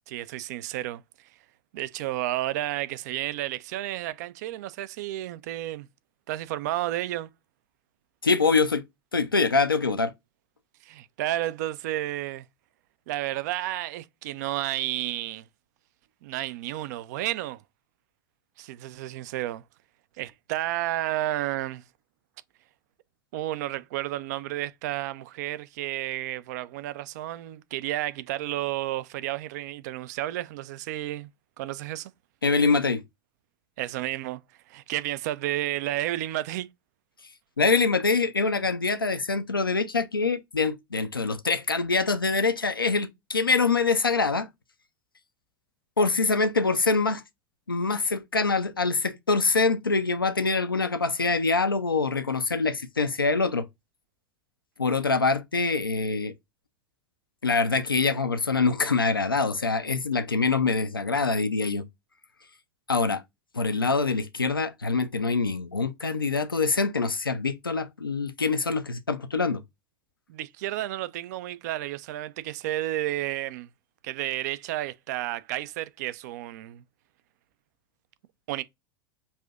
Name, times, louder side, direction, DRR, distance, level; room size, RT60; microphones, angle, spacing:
voice 1, 0.1-1.0 1.7-5.9 6.3-7.3 10.8-12.5 13.1-15.5 16.2-17.6 18.6-19.6 20.2-21.8 23.3-31.3 31.6-32.1 33.8-34.4 34.7-36.7 70.3-73.7 74.0-76.8 78.5-78.6, right 15 dB, 50° right, 0.4 m, -31 dB
voice 2, 8.2-8.8 9.1-10.1 32.4-33.0 37.6-44.5 46.0-47.2 47.7-53.7 54.8-56.3 57.4-61.8 62.9-63.2 63.5-69.6, left 4 dB, 85° left, 0.4 m, -24 dB
5.4 x 2.6 x 2.3 m
figure-of-eight pair, 85°, 11 cm